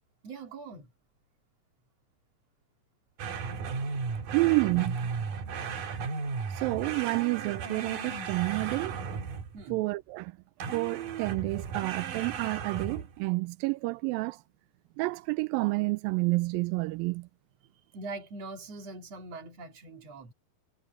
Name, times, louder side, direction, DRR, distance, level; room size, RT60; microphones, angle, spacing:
voice 1, 0.2-0.9 9.5-9.8 17.9-20.3, right 3 dB, 45° right, 3.2 m, -42 dB
sound 1, 3.2-9.6 10.6-13.2, right 5 dB, 60° right, 3.6 m, -35 dB
voice 2, 4.3-5.0 6.6-9.0 9.7-10.3 10.7-14.4 15.0-17.3, right 24 dB, 85° right, 2.0 m, -29 dB
omnidirectional pair, 4.7 m